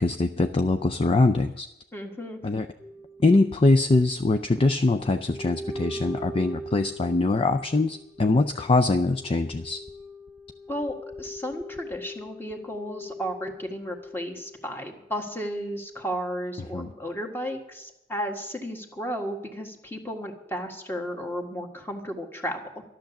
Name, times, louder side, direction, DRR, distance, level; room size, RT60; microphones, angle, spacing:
voice 1, 0.0-1.7 2.4-2.7 3.2-9.8 16.7-16.9, left 2 dB, 30° left, 8 dB, 0.4 m, -23 dB
voice 2, 1.9-2.4 10.7-22.8, equal, 10° left, 3 dB, 1.6 m, -34 dB
sound 1, 2.8-14.7 15.1-15.2, equal, 10° right, 0.6 m, -42 dB
13.0 x 12.0 x 7.1 m, 0.89 s
head